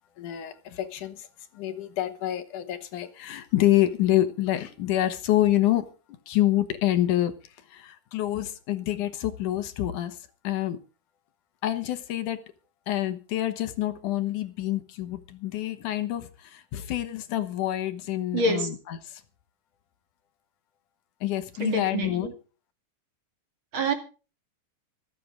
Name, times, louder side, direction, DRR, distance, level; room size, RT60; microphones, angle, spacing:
voice 1, 0.2-1.3 1.5-5.9 6.3-10.8 11.6-12.4 12.9-19.2 21.2-22.3, left 13 dB, 70° left, 2.6 m, -27 dB
voice 2, 18.3-18.7 21.6-22.3 23.7-23.9, right 2 dB, 40° right, 2.8 m, -26 dB
25.5 x 8.7 x 3.7 m
omnidirectional pair, 3.9 m